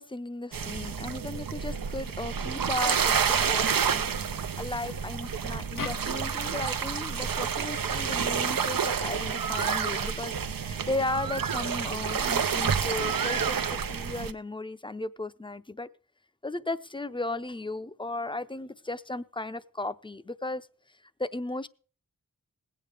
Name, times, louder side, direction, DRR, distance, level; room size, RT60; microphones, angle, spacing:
voice 1, 0.0-15.9 16.4-20.7 21.2-21.7, left 2 dB, 15° left, 0.6 m, -35 dB
sound 1, 0.5-14.3, right 6 dB, 85° right, 0.7 m, -29 dB
sound 2, 0.7-12.7, right 6 dB, 70° right, 1.1 m, -45 dB
sound 3, 5.8-9.0, left 3 dB, 80° left, 1.3 m, -43 dB
20.5 x 8.5 x 3.4 m
wide cardioid pair, 65°, 33 cm